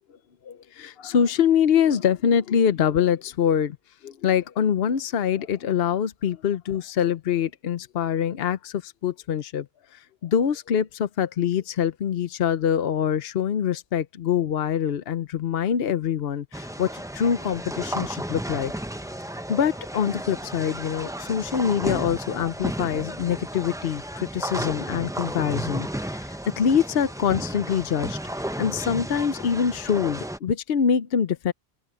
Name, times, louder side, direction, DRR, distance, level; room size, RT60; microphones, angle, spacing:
voice 1, 0.4-3.8 4.0-9.7 9.9-18.7 19.5-31.5, left 8 dB, 70° left, 1.0 m, -24 dB
sound 1, 16.5-30.4, right 1 dB, 5° right, 0.6 m, -33 dB
open air
omnidirectional pair, 1.1 m